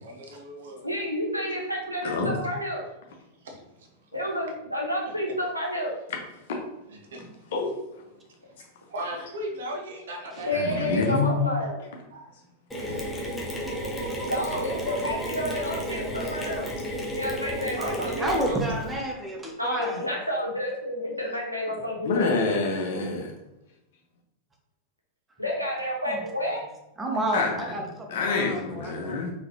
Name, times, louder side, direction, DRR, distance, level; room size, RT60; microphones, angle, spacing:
voice 1, 0.0-0.9 3.4-3.6 7.1-7.2 8.9-11.2 11.6-11.7 12.1-12.3 12.9-13.1 16.2-16.4 17.5-18.6, right 1 dB, 60° right, 2 dB, 0.9 m, -37 dB
voice 2, 0.8-2.8 4.1-5.9 10.4-11.8 14.3-16.7 17.1-18.3 19.6-22.3 25.4-26.6, left 1 dB, 90° left, -2 dB, 0.9 m, -30 dB
voice 3, 2.0-2.3 6.5-6.6 7.5-7.7 10.5-11.5 22.0-23.3 27.3-27.6 28.1-29.3, left 3 dB, 55° left, 1 dB, 0.9 m, -26 dB
Mechanisms, 12.7-18.9, equal, 10° left, 1.0 m, -32 dB
voice 4, 18.0-20.0 21.7-21.8 26.1-26.3 27.0-29.2, right 1 dB, 15° right, 1 dB, 0.9 m, -31 dB
4.0 x 3.3 x 2.8 m, 0.90 s
figure-of-eight pair, 90°, 0 cm